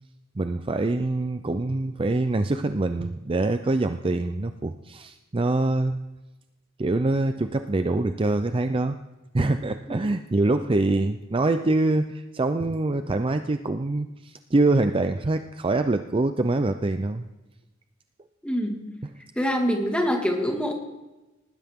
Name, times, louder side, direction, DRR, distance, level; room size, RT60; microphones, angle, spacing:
voice 1, 0.4-6.0 6.8-9.0 9.3-17.2, right 2 dB, 25° right, 9 dB, 0.5 m, -24 dB
voice 2, 18.4-18.9 19.4-20.7, equal, 5° left, 2 dB, 2.0 m, -25 dB
19.5 x 16.0 x 3.7 m, 1.1 s
head